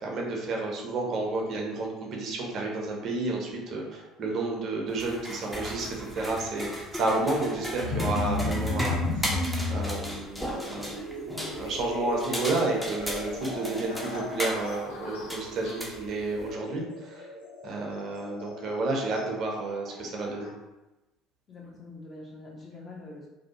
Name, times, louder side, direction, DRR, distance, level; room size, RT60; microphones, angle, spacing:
voice 1, 0.0-11.0 11.6-17.3 17.6-20.5, right 2 dB, 50° right, -1 dB, 0.6 m, -31 dB
sound 1, 4.9-16.5, equal, ahead, 0.5 m, -37 dB
sound 2, 7.8-20.5, left 2 dB, 80° left, 0.7 m, -35 dB
voice 2, 21.5-23.3, left 2 dB, 35° left, -3 dB, 0.8 m, -44 dB
2.6 x 2.2 x 2.8 m, 1.0 s
figure-of-eight pair, 60°, 0 cm